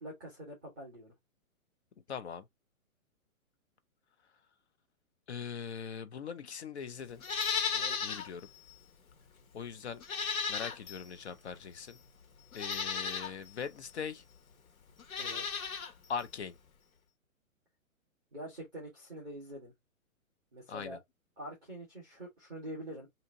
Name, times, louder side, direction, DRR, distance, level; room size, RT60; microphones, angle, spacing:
voice 1, 0.0-1.1 7.7-8.0 15.2-15.6 18.3-19.7 20.5-21.0 21.4-23.1, right 1 dB, ahead, 0.5 m, -45 dB
voice 2, 2.1-2.4 5.3-7.2 8.0-8.5 9.5-10.0 10.5-12.0 12.5-14.2 16.1-16.6 20.7-21.0, left 6 dB, 50° left, 0.5 m, -41 dB
Livestock farm animals working animals, 7.2-8.3 8.7-8.8 10.0-11.1 11.9-12.0 12.5-13.3 15.0-15.9 16.2-16.3, left 6 dB, 70° left, 1.3 m, -34 dB
2.8 x 2.8 x 3.4 m
hypercardioid pair, 165°, 43 cm